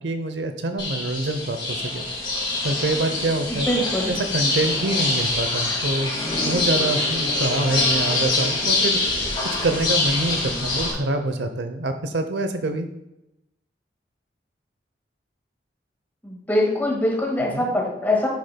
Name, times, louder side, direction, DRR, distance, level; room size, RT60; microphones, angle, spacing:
voice 1, 0.0-2.1 2.6-3.7 4.1-6.1 6.4-12.9 17.5-17.7, right 2 dB, 80° right, 7 dB, 0.8 m, -26 dB
sound 1, 0.8-10.9, left 2 dB, 25° left, 2.5 m, -24 dB
voice 2, 3.5-4.1 16.2-18.3, left 1 dB, 10° left, -2 dB, 1.9 m, -23 dB
9.8 x 6.5 x 2.3 m, 0.89 s
head